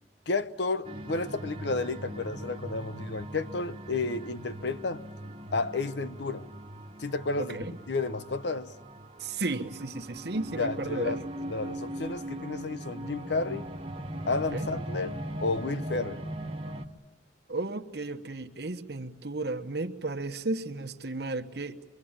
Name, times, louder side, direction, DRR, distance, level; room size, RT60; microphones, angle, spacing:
voice 1, 0.3-5.0 5.5-6.5 7.0-8.7 10.6-13.7 14.3-16.3, left 3 dB, 65° left, 0.8 m, -32 dB
sound 1, 0.8-16.9, right 1 dB, 30° right, 1.2 m, -40 dB
voice 2, 7.4-7.8 9.2-11.2 14.5-14.7 17.5-21.8, right 2 dB, 60° right, 1.2 m, -34 dB
25.0 x 23.5 x 8.9 m
head